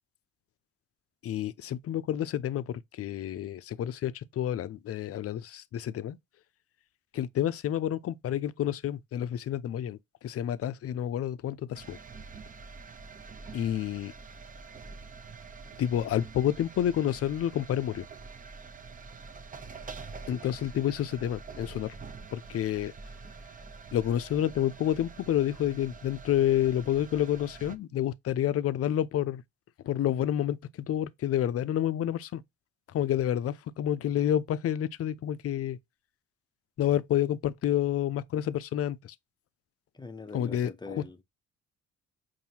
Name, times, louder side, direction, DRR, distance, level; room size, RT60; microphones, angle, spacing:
voice 1, 1.2-6.2 7.1-12.0 13.5-14.1 15.8-18.1 20.3-21.9 22.3-22.9 23.9-29.4 29.8-32.4 32.9-35.8 36.8-39.1 40.3-41.0, left 11 dB, 50° left, 0.5 m, -29 dB
sound 1, 11.7-27.8, right 4 dB, 25° right, 0.7 m, -46 dB
voice 2, 39.9-41.2, left 3 dB, 15° left, 0.7 m, -42 dB
5.5 x 2.7 x 2.8 m
cardioid pair, 90°, 30 cm